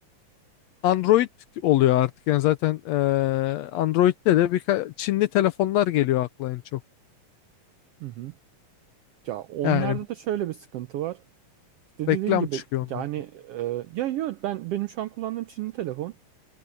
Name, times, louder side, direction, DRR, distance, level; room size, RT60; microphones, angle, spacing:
voice 1, 0.8-1.3 1.6-6.8 9.6-10.0 12.1-12.8, left 14 dB, 75° left, 1.7 m, -22 dB
voice 2, 8.0-8.3 9.2-11.2 12.0-12.6 12.9-16.1, right 14 dB, 85° right, 1.3 m, -31 dB
omnidirectional pair, 3.5 m